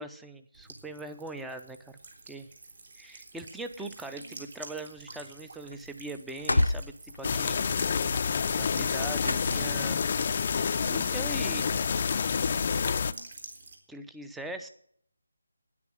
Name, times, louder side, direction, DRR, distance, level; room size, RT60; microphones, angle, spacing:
voice 1, 0.0-2.0 2.3-2.5 3.0-7.6 8.6-10.0 10.9-11.7 13.9-14.7, right 2 dB, 5° right, 8 dB, 0.6 m, -41 dB
Buzz / Water tap faucet / Trickle dribble, 0.5-13.7, right 3 dB, 55° right, 3.7 m, -49 dB
sound 1, 5.4-5.5 5.7-6.0 6.3-10.1, left 2 dB, 85° left, 0.7 m, -30 dB
sound 2, 7.2-13.1, left 6 dB, 40° left, 0.5 m, -28 dB
9.8 x 9.7 x 7.3 m, 0.65 s
figure-of-eight pair, 165°, 0 cm